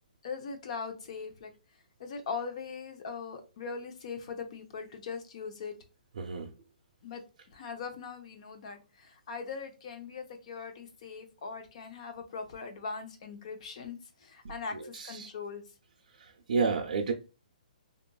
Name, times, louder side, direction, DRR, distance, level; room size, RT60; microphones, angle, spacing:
voice 1, 0.2-1.5 2.0-5.7 7.0-7.2 7.5-15.6, left 5 dB, 45° left, 0.7 m, -40 dB
voice 2, 6.1-6.5 14.9-15.3 16.2-17.1, right 4 dB, 70° right, 0.5 m, -30 dB
2.9 x 2.4 x 2.2 m
hypercardioid pair, 155°, 5 cm